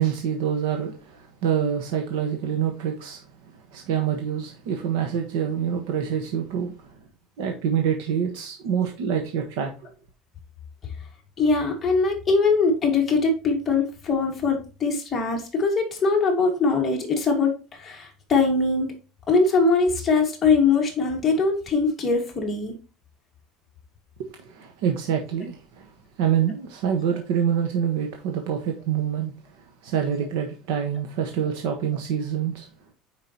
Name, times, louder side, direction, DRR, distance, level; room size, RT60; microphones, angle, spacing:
voice 1, 0.0-6.9 7.4-9.9 24.2-25.9 26.2-29.3 29.8-32.7, right 8 dB, 75° right, 1.4 m, -26 dB
voice 2, 11.4-18.9 19.3-22.7, left 4 dB, 15° left, 2.0 m, -22 dB
9.3 x 5.2 x 3.0 m
cardioid pair, 175°, 0 cm